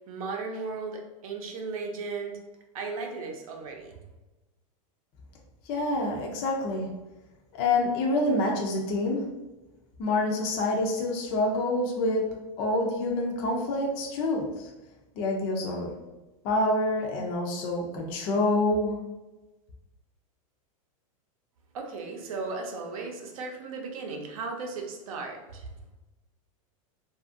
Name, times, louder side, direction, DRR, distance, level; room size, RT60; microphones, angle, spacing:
voice 1, 0.1-2.4 2.7-4.0 21.7-25.7, right 4 dB, 85° right, 2 dB, 0.6 m, -36 dB
voice 2, 5.7-6.9 7.5-9.2 10.0-14.4 15.2-15.9 16.4-19.0, left 2 dB, 30° left, 0 dB, 0.4 m, -27 dB
2.6 x 2.4 x 2.5 m, 1.1 s
supercardioid pair, 165°, 18 cm